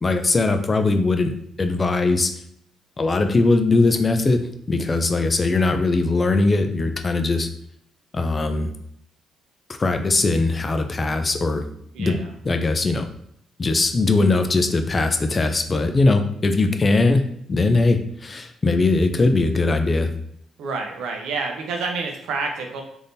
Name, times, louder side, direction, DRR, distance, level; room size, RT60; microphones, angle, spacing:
voice 1, 0.0-1.3 1.6-2.3 3.0-7.5 8.1-8.7 9.8-11.6 12.0-13.1 13.6-17.2 17.5-20.1, left 3 dB, 30° left, 7 dB, 0.4 m, -20 dB
voice 2, 20.6-22.8, right 4 dB, 85° right, 3 dB, 0.6 m, -28 dB
3.5 x 2.6 x 2.6 m, 0.71 s
cardioid pair, 90°, 0 cm